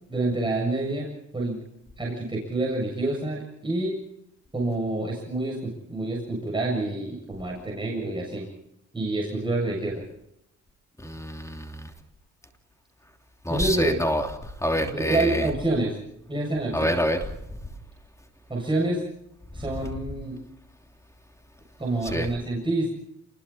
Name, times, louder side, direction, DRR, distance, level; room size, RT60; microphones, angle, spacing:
voice 1, 0.1-1.1 1.3-1.6 2.0-4.0 4.5-8.5 8.9-10.0 13.5-14.0 14.8-16.0 16.3-17.0 18.5-19.0 19.5-20.4 21.8-22.9, right 2 dB, 15° right, -3 dB, 7.4 m, -27 dB
voice 2, 11.0-11.9 13.4-15.5 16.7-17.3 22.0-22.3, equal, 10° left, 4 dB, 3.0 m, -27 dB
30.0 x 21.5 x 4.3 m, 0.80 s
cardioid pair, 90°, 30 cm